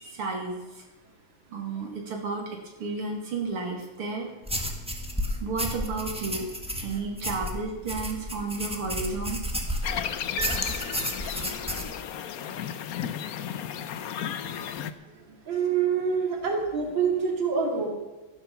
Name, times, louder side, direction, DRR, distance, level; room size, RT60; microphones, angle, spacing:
voice 1, 0.0-0.8 1.5-2.5 2.8-4.3 5.4-6.4 6.8-9.4 12.5-12.6 14.8-14.9 15.3-15.4, right 4 dB, 80° right, 0 dB, 3.1 m, -32 dB
sound 1, 4.4-10.0 10.4-11.9, equal, 5° right, 1.5 m, -32 dB
sound 2, 9.8-14.9, left 9 dB, 65° left, 0.9 m, -34 dB
sound 3, 10.4-11.8, right 7 dB, 40° right, 1.9 m, -39 dB
voice 2, 15.5-17.9, right 6 dB, 60° right, 1 dB, 3.2 m, -26 dB
15.0 x 10.5 x 7.0 m, 1.2 s
omnidirectional pair, 2.4 m